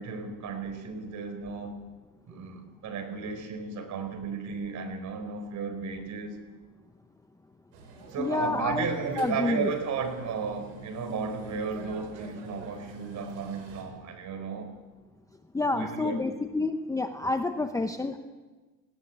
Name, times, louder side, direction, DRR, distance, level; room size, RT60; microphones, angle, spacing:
voice 1, 0.0-1.8 2.3-6.4 8.1-14.7 15.7-16.2, right 5 dB, 40° right, 7 dB, 4.5 m, -34 dB
sound 1, 7.7-13.8, right 4 dB, 75° right, 7.9 m, -48 dB
voice 2, 8.2-8.9 9.2-9.7 15.5-18.2, left 2 dB, 10° left, 7 dB, 0.8 m, -28 dB
20.0 x 17.0 x 9.2 m, 1.3 s
cardioid pair, 130°, 43 cm